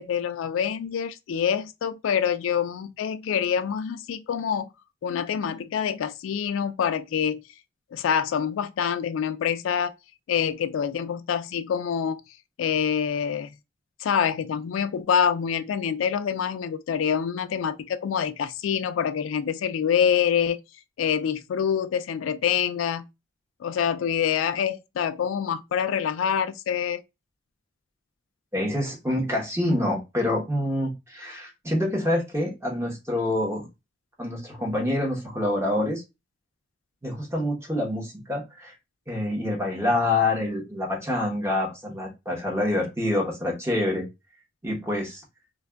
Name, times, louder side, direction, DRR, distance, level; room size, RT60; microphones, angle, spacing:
voice 1, 0.0-4.7 5.0-7.4 7.9-9.9 10.3-12.2 12.6-13.5 14.0-20.6 21.0-23.0 23.6-27.0, left 8 dB, 80° left, 0.3 m, -26 dB
voice 2, 28.5-33.7 34.2-36.0 37.0-38.7 39.1-44.1 44.6-45.2, left 1 dB, 15° right, 1.0 m, -26 dB
2.5 x 2.3 x 3.3 m
head